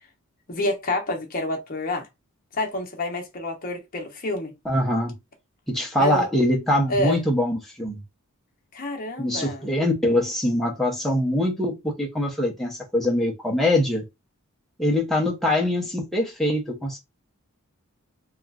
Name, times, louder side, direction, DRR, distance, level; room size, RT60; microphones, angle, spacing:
voice 1, 0.5-2.1 2.5-4.5 6.0-6.3 6.9-7.2 8.7-9.7, left 1 dB, 40° left, 0.8 m, -28 dB
voice 2, 4.6-5.1 5.7-8.0 9.2-14.0 14.8-17.0, left 1 dB, ahead, 0.6 m, -23 dB
3.0 x 2.3 x 2.3 m
head